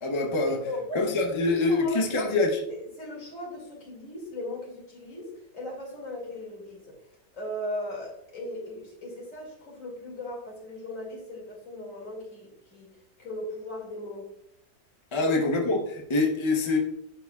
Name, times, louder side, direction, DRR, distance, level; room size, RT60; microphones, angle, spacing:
voice 1, 0.0-0.7 0.9-2.6 15.1-16.8, left 3 dB, 30° left, 1 dB, 0.6 m, -25 dB
voice 2, 0.6-1.1 1.4-2.3 2.7-7.0 7.3-14.3 15.1-15.3, left 1 dB, 55° left, -2 dB, 2.6 m, -38 dB
10.0 x 4.7 x 2.3 m, 0.79 s
omnidirectional pair, 1.7 m